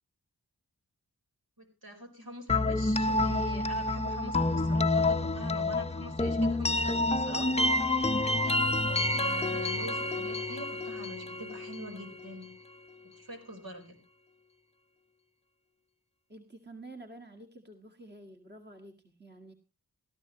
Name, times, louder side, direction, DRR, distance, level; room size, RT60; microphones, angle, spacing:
voice 1, 1.6-7.5 8.2-12.5 13.0-14.0, equal, 65° right, 2 dB, 4.7 m, -43 dB
sound 1, 2.5-12.3, left 2 dB, 15° left, 0.7 m, -28 dB
voice 2, 16.3-19.5, right 2 dB, 25° right, 3 dB, 2.0 m, -49 dB
17.5 x 13.5 x 3.1 m, 0.31 s
cardioid pair, 45°, 38 cm